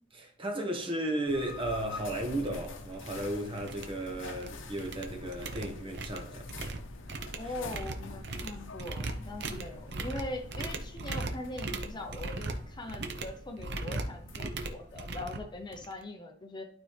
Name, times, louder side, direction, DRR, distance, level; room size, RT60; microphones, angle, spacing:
voice 1, 0.1-6.5 7.4-7.5 9.5-9.6, right 1 dB, 30° right, 1.2 m, -35 dB
sound 1, 1.3-15.9, left 3 dB, 75° left, 0.8 m, -47 dB
sound 2, 1.9-2.0 2.4-2.7 2.9-3.3 3.6-4.5 4.8-16.0, right 2 dB, 60° right, 0.8 m, -39 dB
voice 2, 7.4-16.6, left 2 dB, 25° left, 0.7 m, -41 dB
12.0 x 4.2 x 3.3 m
head